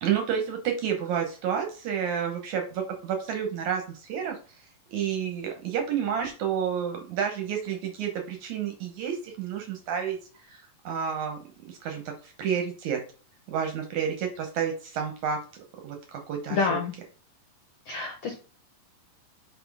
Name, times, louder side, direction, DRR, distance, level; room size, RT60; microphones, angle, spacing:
voice 1, 0.0-4.4 4.9-13.0 13.5-15.4 15.8-16.6, right 8 dB, 70° right, 4 dB, 1.9 m, -30 dB
voice 2, 16.5-16.9 17.8-18.4, left 4 dB, 80° left, 4 dB, 1.4 m, -28 dB
5.2 x 4.3 x 4.7 m, 0.38 s
omnidirectional pair, 4.1 m